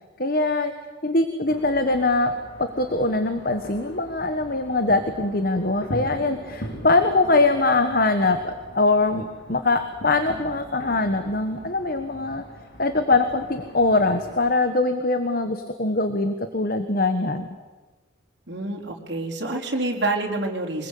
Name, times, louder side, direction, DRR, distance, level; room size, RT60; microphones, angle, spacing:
voice 1, 0.2-0.7 1.0-2.3 2.6-12.4 12.8-17.5, left 2 dB, 45° left, 8 dB, 1.3 m, -22 dB
sound 1, 1.5-14.5, equal, 75° left, 4.6 m, -41 dB
voice 2, 18.5-20.9, right 2 dB, 60° right, 0 dB, 4.3 m, -27 dB
25.0 x 21.0 x 8.5 m, 1.3 s
head